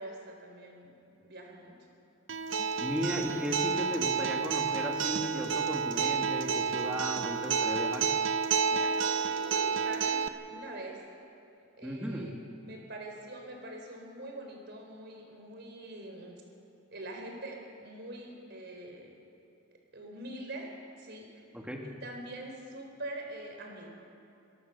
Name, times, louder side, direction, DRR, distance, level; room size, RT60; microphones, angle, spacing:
voice 1, 0.0-1.7 8.6-10.2 10.5-11.0 11.8-16.4 16.9-19.2 19.7-20.7 21.0-21.5 21.8-23.9, right 1 dB, 60° right, 2 dB, 4.1 m, -44 dB
Acoustic guitar, 2.3-10.3, right 5 dB, 80° right, 0.9 m, -30 dB
voice 2, 2.8-8.1 11.8-12.3 21.5-21.8, equal, 5° right, 0 dB, 2.4 m, -35 dB
24.0 x 17.5 x 6.8 m, 2.7 s
head